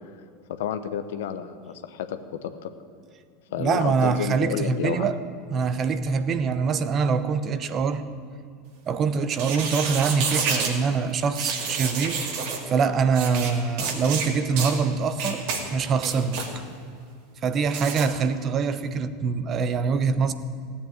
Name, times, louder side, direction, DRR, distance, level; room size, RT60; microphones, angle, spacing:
voice 1, 0.5-2.7 3.5-5.0, left 8 dB, 70° left, 10 dB, 0.9 m, -30 dB
voice 2, 3.6-5.2 5.5-8.0 8.9-12.4 12.7-16.6 17.4-20.3, right 5 dB, 35° right, 12 dB, 1.0 m, -24 dB
sound 1, 9.3-10.7 11.4-12.6 13.1-13.5 13.8-14.3 14.6-14.8 15.2-15.6 16.0-16.5 17.7-18.1, right 5 dB, 60° right, 2.4 m, -29 dB
16.5 x 8.7 x 9.0 m, 2.3 s
hypercardioid pair, 85°, 0 cm